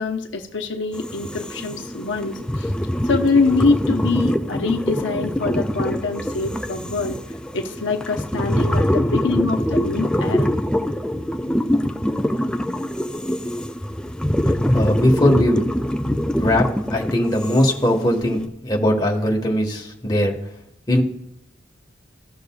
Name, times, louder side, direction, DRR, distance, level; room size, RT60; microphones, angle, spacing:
voice 1, 0.0-2.7 3.0-7.2 7.5-10.5, left 3 dB, 75° left, 3 dB, 0.9 m, -24 dB
sound 1, 0.9-18.5, equal, 5° left, 0.3 m, -24 dB
voice 2, 14.5-15.7 16.4-20.3 20.9-21.0, left 1 dB, 20° left, -1 dB, 1.4 m, -20 dB
15.5 x 6.6 x 2.3 m, 0.79 s
head